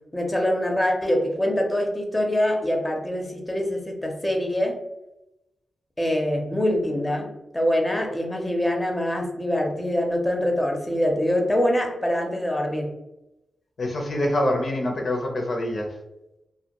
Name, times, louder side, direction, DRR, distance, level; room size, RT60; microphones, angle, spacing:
voice 1, 0.1-4.8 6.0-12.9, left 1 dB, 15° left, 2 dB, 0.6 m, -24 dB
voice 2, 13.8-15.9, left 1 dB, 60° left, 1 dB, 0.5 m, -25 dB
2.2 x 2.2 x 2.8 m, 0.92 s
cardioid pair, 55°, 0 cm